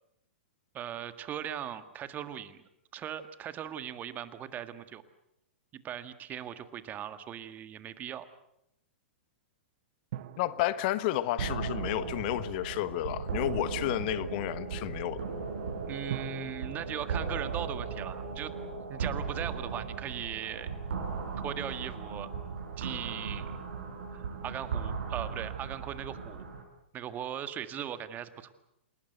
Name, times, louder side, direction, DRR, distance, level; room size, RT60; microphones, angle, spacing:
voice 1, 0.7-2.6 2.9-5.0 5.7-8.3 15.9-18.6 18.9-20.7 21.4-22.3 22.8-23.5 24.1-26.4 26.9-28.5, right 9 dB, 30° right, 11 dB, 1.8 m, -39 dB
sound 1, 10.1-12.7 16.1-18.7 19.0-19.1, right 12 dB, 55° right, 1.2 m, -47 dB
voice 2, 10.4-15.2, left 14 dB, 50° left, 15 dB, 1.3 m, -31 dB
sound 2, 11.4-26.6, right 5 dB, 70° right, 6.3 m, -37 dB
28.5 x 19.0 x 8.1 m, 0.81 s
hypercardioid pair, 115°, 6 cm